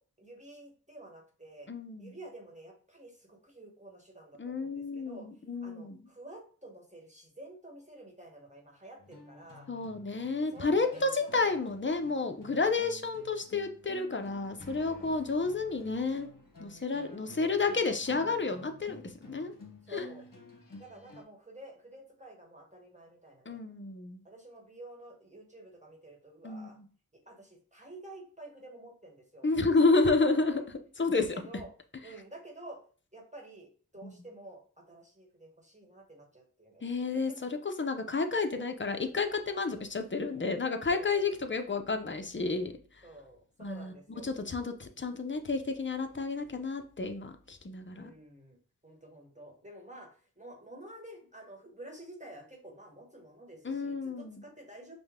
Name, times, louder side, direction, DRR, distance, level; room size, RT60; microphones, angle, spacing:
voice 1, 0.0-1.7 2.0-5.3 5.6-9.7 10.5-11.5 15.0-15.5 17.0-17.5 19.9-20.3 20.8-23.6 24.2-26.8 27.3-29.5 29.8-29.9 30.3-30.7 31.2-31.7 32.0-32.8 33.1-37.4 40.9-41.3 43.0-44.3 47.9-48.6 48.8-50.1 50.4-54.9, right 1 dB, 20° right, 0 dB, 1.2 m, -50 dB
voice 2, 1.7-2.2 4.4-6.0 9.7-16.3 16.6-19.5 19.9-20.1 23.5-24.2 26.4-26.8 29.4-30.5 31.0-31.4 34.0-34.2 36.8-42.7 43.6-43.9 44.2-48.1 53.6-54.4, left 3 dB, 30° left, 7 dB, 0.6 m, -31 dB
sound 1, 9.0-21.2, left 2 dB, 60° left, 1.1 m, -52 dB
5.1 x 2.1 x 3.6 m, 0.41 s
wide cardioid pair, 50°, 36 cm